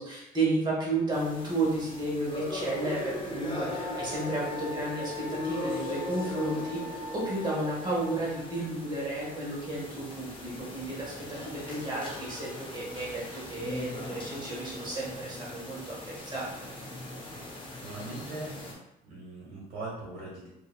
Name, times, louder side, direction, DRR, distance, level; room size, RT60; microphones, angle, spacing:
voice 1, 0.0-16.7, right 2 dB, 25° right, -6 dB, 1.3 m, -33 dB
sound 1, 1.1-18.7, left 1 dB, 30° left, 0.7 m, -39 dB
Wind instrument woodwind instrument, 3.7-8.7, left 5 dB, 50° right, 1.4 m, -42 dB
voice 2, 17.8-20.5, right 2 dB, 75° right, -7 dB, 1.3 m, -41 dB
2.7 x 2.7 x 2.2 m, 0.86 s
cardioid pair, 110°, 17 cm